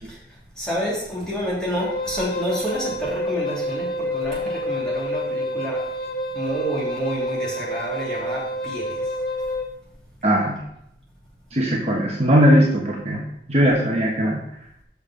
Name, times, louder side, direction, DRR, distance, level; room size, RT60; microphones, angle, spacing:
voice 1, 0.0-6.1 6.3-9.1, equal, 5° left, -6 dB, 2.7 m, -29 dB
Wind instrument woodwind instrument, 1.8-9.7, equal, 55° left, 1.0 m, -28 dB
voice 2, 10.2-10.6 11.5-14.4, equal, 35° right, -2 dB, 1.1 m, -19 dB
6.9 x 5.8 x 5.6 m, 0.75 s
head